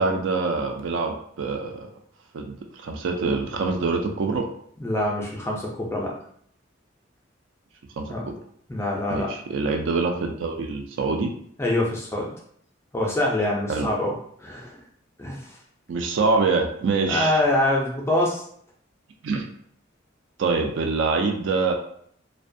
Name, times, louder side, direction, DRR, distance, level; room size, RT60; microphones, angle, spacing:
voice 1, 0.0-1.9 2.3-4.5 8.0-8.1 9.1-11.3 13.7-13.9 15.9-17.4 19.2-19.4 20.4-21.7, right 4 dB, 70° right, 3 dB, 0.4 m, -25 dB
voice 2, 4.8-6.1 8.1-8.3 8.7-9.3 11.6-12.3 12.9-14.1 14.4-14.8 15.2-15.6 17.1-18.4, left 1 dB, 15° left, -2 dB, 0.4 m, -25 dB
2.4 x 2.1 x 2.5 m, 0.64 s
head